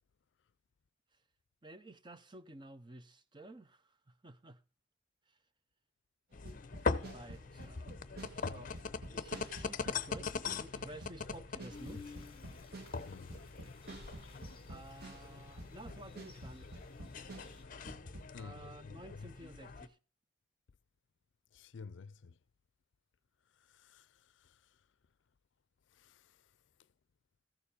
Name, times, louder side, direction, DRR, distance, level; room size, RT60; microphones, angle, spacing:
voice 1, 1.6-4.6 7.1-7.9 8.3-8.7 9.1-12.3 14.7-16.7 18.3-20.0, right 1 dB, 25° right, 0.7 m, -53 dB
sound 1, 6.3-19.9, left 4 dB, 45° left, 0.7 m, -42 dB
sound 2, 6.4-15.3 15.6-18.3, right 1 dB, 55° right, 1.7 m, -50 dB
sound 3, 11.7-17.6, left 4 dB, 30° left, 2.5 m, -57 dB
voice 2, 13.1-13.4 18.3-19.3 21.5-22.4 23.7-24.1 24.4-24.6 26.0-26.3, left 5 dB, 75° left, 0.4 m, -51 dB
14.0 x 7.1 x 5.0 m
head